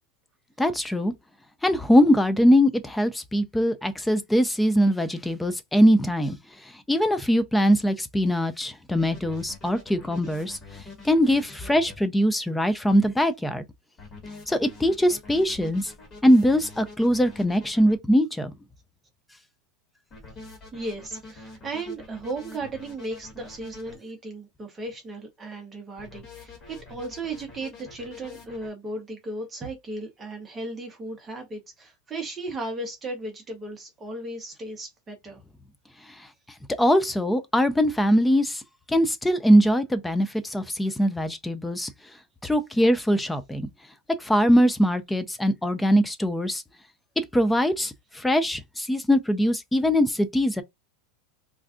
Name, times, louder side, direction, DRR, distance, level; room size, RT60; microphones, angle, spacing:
voice 1, 0.6-1.1 1.6-6.4 6.9-10.6 11.0-13.6 14.5-15.9 16.2-18.5 36.8-38.6 38.9-41.9 42.4-43.7 44.2-46.6 47.2-50.6, equal, 5° left, 0.4 m, -22 dB
sound 1, 9.0-12.0 14.0-18.0 20.1-24.0 26.0-28.7, left 3 dB, 25° left, 1.3 m, -45 dB
voice 2, 20.4-35.4, right 2 dB, 15° right, 0.7 m, -36 dB
2.4 x 2.3 x 3.6 m
supercardioid pair, 165°, 0 cm